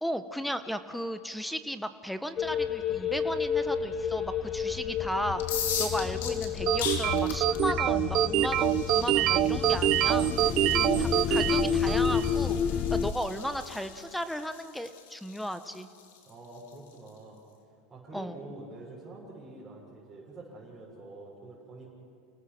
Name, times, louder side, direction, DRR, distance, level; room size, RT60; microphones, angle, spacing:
voice 1, 0.0-5.4 5.8-10.3 11.0-12.6 12.9-15.9 18.1-18.4, equal, ahead, 11 dB, 1.0 m, -35 dB
sound 1, 2.4-13.1, left 7 dB, 35° left, 1.1 m, -30 dB
sound 2, 5.3-17.1, left 7 dB, 80° left, 3.1 m, -40 dB
sound 3, 6.7-12.4, right 14 dB, 50° right, 0.5 m, -26 dB
voice 2, 16.2-17.4 17.9-21.9, right 2 dB, 15° right, -7 dB, 6.2 m, -47 dB
29.5 x 19.0 x 6.1 m, 2.3 s
supercardioid pair, 115°, 0 cm